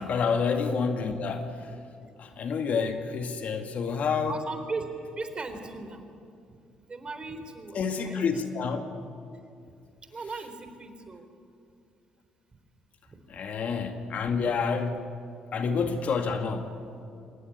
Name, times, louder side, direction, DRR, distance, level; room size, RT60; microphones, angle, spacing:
voice 1, 0.0-1.7 2.2-4.3 7.7-8.9 13.3-15.1 15.5-16.8, left 5 dB, 60° left, 6 dB, 2.1 m, -28 dB
voice 2, 4.3-4.9 5.2-6.1 6.5-6.6 6.9-8.3 10.1-11.3 13.1-13.2 13.7-13.9 15.8-15.9 16.3-16.4, right 3 dB, 35° right, 7 dB, 3.8 m, -38 dB
23.5 x 18.5 x 9.5 m, 2.5 s
supercardioid pair, 60°, 3 cm